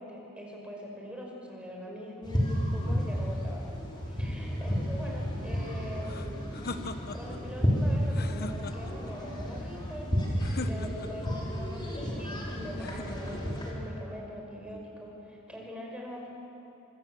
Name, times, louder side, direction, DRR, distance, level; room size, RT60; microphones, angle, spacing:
voice 1, 0.0-6.6 6.8-16.3, left 1 dB, 5° right, -1 dB, 5.4 m, -43 dB
sound 1, 2.2-13.7, equal, 20° left, 4.7 m, -32 dB
sound 2, 6.0-7.4 8.1-9.1 10.4-11.3 12.8-13.6, left 2 dB, 45° left, 1.1 m, -40 dB
26.0 x 24.5 x 7.8 m, 2.8 s
head